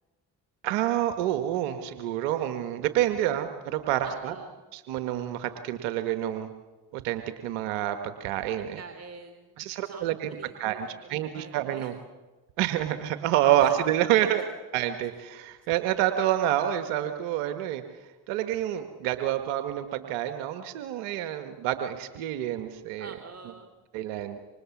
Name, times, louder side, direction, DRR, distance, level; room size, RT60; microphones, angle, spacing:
voice 1, 0.6-4.3 4.7-6.5 6.9-8.8 9.6-11.9 12.6-14.4 14.7-23.1 23.9-24.4, right 12 dB, 85° right, 8 dB, 1.5 m, -28 dB
voice 2, 4.0-4.6 8.7-11.9 13.6-13.8 14.2-14.4 23.0-23.7, right 4 dB, 30° right, 5 dB, 3.3 m, -46 dB
28.0 x 25.5 x 7.2 m, 1.2 s
hypercardioid pair, 45°, 49 cm